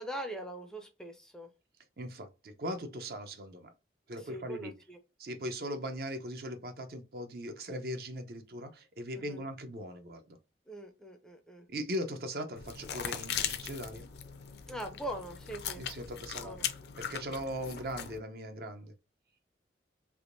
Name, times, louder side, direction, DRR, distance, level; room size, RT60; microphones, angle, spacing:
voice 1, 0.0-1.5 4.3-5.0 9.1-9.5 10.7-11.7 14.7-15.9 16.4-16.7, right 1 dB, 5° left, 0.4 m, -42 dB
voice 2, 2.0-3.7 4.1-4.7 5.2-10.2 11.7-14.1 15.8-16.6 17.0-18.9, equal, 55° right, 0.6 m, -39 dB
sound 1, 12.6-18.2, left 9 dB, 65° left, 0.4 m, -39 dB
3.4 x 2.9 x 2.5 m
head